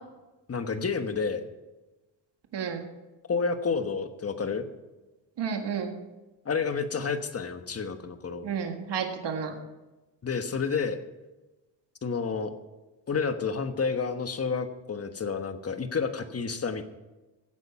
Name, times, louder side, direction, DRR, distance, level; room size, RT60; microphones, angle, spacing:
voice 1, 0.5-1.5 3.3-4.7 6.4-8.4 10.2-11.0 12.0-12.5 13.1-16.8, left 5 dB, 35° left, 8 dB, 1.3 m, -30 dB
voice 2, 5.4-5.9 8.4-9.6, right 6 dB, 70° right, 4 dB, 1.8 m, -31 dB
16.0 x 9.1 x 5.8 m, 1.1 s
wide cardioid pair, 125°, 44 cm